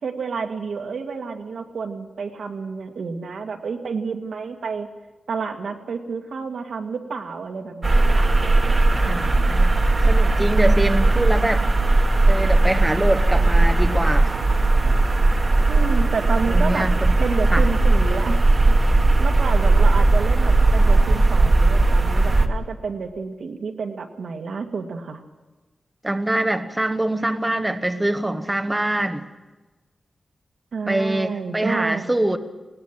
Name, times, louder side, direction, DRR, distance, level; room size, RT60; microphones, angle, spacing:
voice 1, 0.0-4.9 5.3-8.3 15.7-16.9 17.2-18.4 18.7-25.2 30.7-32.1, right 5 dB, 80° right, 4 dB, 1.9 m, -30 dB
sound 1, 7.8-22.5, right 2 dB, 30° right, 1.4 m, -17 dB
voice 2, 8.9-11.6 12.3-14.3 16.5-17.2 17.5-17.6 26.0-29.3 30.9-32.4, right 1 dB, 10° right, 7 dB, 1.0 m, -24 dB
20.0 x 19.0 x 7.6 m, 1.2 s
wide cardioid pair, 160°, 0 cm